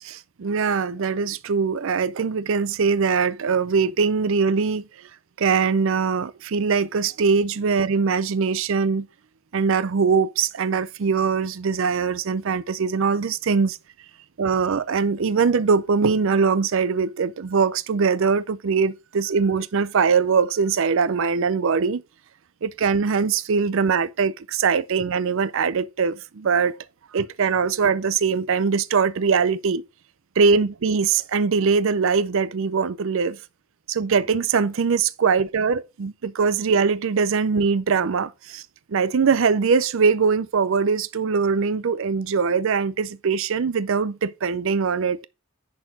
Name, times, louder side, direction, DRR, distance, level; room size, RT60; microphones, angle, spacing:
voice 1, 0.0-4.8 5.4-9.1 9.5-13.8 14.4-22.0 22.6-26.8 27.1-29.8 30.4-33.4 33.9-38.6 38.9-45.2, right 5 dB, 60° right, 0.5 m, -22 dB
10.5 x 4.4 x 5.8 m
head